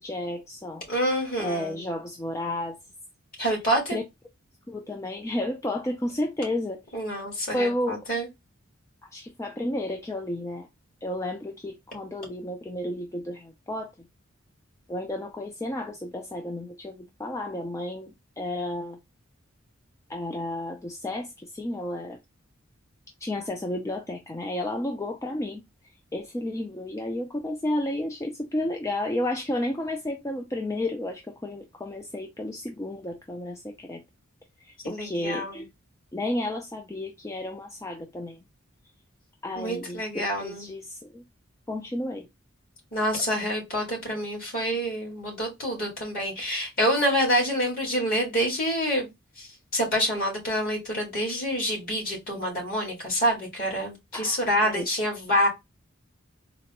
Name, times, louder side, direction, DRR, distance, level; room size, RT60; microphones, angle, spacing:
voice 1, 0.0-0.8 1.4-2.8 3.9-4.0 4.7-6.8 7.5-8.0 9.0-10.7 11.0-13.9 14.9-18.1 18.4-19.0 20.1-22.2 23.2-25.6 26.1-34.0 34.6-35.7 36.1-38.4 39.4-41.2 41.7-42.3 54.1-54.9, left 1 dB, 15° left, 0.3 m, -32 dB
voice 2, 0.9-1.8 3.4-4.0 6.9-8.3 34.8-35.6 39.5-40.7 42.9-49.1 49.4-49.5 49.7-55.5, equal, 45° left, 1.8 m, -27 dB
3.9 x 2.2 x 2.8 m
head